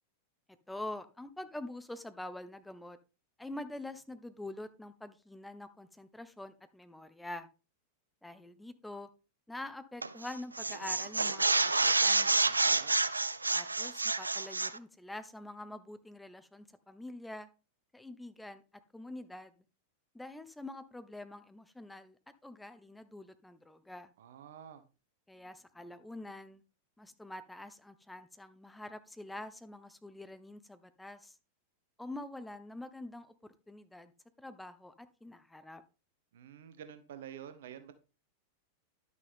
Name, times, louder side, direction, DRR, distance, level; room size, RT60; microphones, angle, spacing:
voice 1, 0.7-3.0 3.4-7.5 8.2-9.1 9.5-12.3 13.5-17.5 17.9-18.6 18.9-19.5 20.1-24.1 25.3-26.6 27.0-31.4 32.0-34.1 34.4-35.8, left 1 dB, 5° left, 0.9 m, -46 dB
sound 1, 10.0-10.3 10.6-14.8, right 3 dB, 80° right, 0.4 m, -28 dB
voice 2, 12.3-12.9 24.2-24.8 36.3-37.9, right 9 dB, 60° right, 1.0 m, -49 dB
11.0 x 6.4 x 3.6 m
figure-of-eight pair, 90°, 0 cm